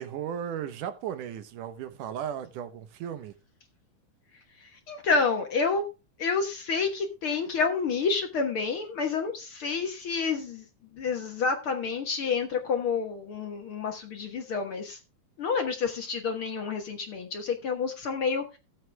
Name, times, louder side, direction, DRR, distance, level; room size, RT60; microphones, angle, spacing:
voice 1, 0.0-3.3, right 9 dB, 80° right, 2.6 m, -35 dB
voice 2, 4.9-5.8 6.2-10.7 10.9-15.0 15.4-18.6, left 5 dB, 55° left, 1.8 m, -29 dB
15.0 x 7.9 x 3.4 m
omnidirectional pair, 3.6 m